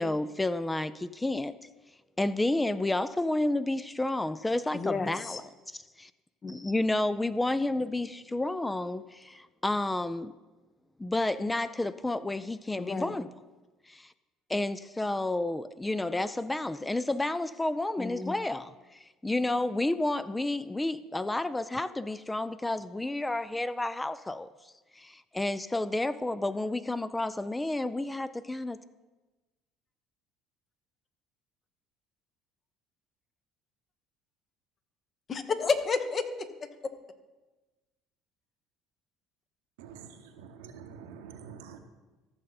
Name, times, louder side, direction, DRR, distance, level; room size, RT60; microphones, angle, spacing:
voice 1, 0.0-1.5 2.2-6.1 6.5-10.3 11.0-13.3 13.9-14.1 14.5-28.8, left 2 dB, 15° left, 14 dB, 0.4 m, -31 dB
voice 2, 4.7-5.4 6.4-6.5 12.8-13.2 18.0-18.4 35.3-36.7, left 4 dB, 40° left, 9 dB, 1.0 m, -31 dB
voice 3, 39.8-41.8, right 7 dB, 85° right, 7 dB, 0.9 m, -47 dB
14.5 x 6.5 x 4.0 m, 1.2 s
hypercardioid pair, 70°, 0 cm